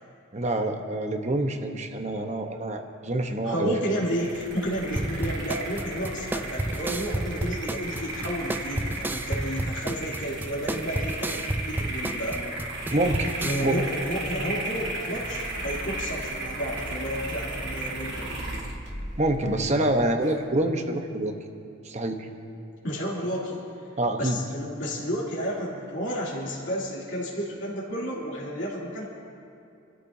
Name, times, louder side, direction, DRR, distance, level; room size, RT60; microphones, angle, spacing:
voice 1, 0.3-3.7 12.9-13.3 13.6-13.8 19.2-21.3 21.8-22.3 24.0-24.4, right 1 dB, 35° right, 4 dB, 1.0 m, -26 dB
voice 2, 3.4-12.4 13.4-18.4 22.8-23.6 24.2-29.1, equal, 60° left, -7 dB, 2.9 m, -31 dB
sound 1, 4.0-20.4, right 2 dB, 55° right, 1.8 m, -35 dB
sound 2, 5.0-13.6, right 1 dB, 10° right, 0.3 m, -31 dB
27.5 x 13.0 x 2.8 m, 2.5 s
head